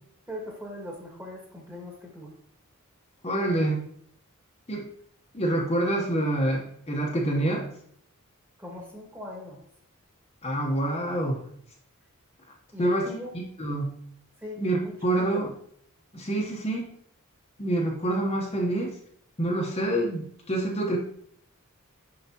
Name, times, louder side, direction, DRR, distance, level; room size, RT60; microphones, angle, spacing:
voice 1, 0.3-2.3 8.6-9.6 12.7-13.3 14.4-15.4, left 1 dB, 10° right, -1 dB, 1.6 m, -40 dB
voice 2, 3.2-3.9 4.7-4.9 5.3-7.7 10.4-11.4 12.8-13.1 13.6-14.0 14.6-15.5 16.1-16.9 17.6-19.0 19.4-21.0, right 1 dB, 30° left, -2 dB, 1.0 m, -26 dB
6.9 x 5.6 x 2.8 m, 0.65 s
head